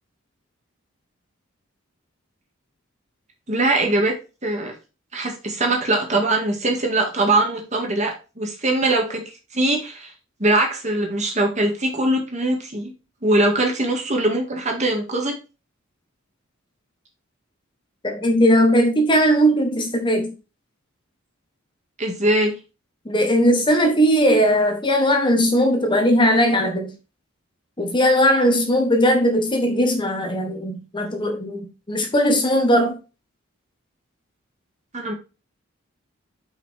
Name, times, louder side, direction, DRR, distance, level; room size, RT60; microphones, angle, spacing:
voice 1, 3.5-4.1 4.4-4.7 5.1-10.1 10.4-12.9 13.2-15.4 22.0-22.5 34.9-35.1, right 2 dB, 35° right, 2.0 m, -22 dB
voice 2, 18.0-20.3 23.0-26.9 27.8-33.0, equal, 25° left, 1.2 m, -18 dB
5.8 x 5.5 x 4.4 m
head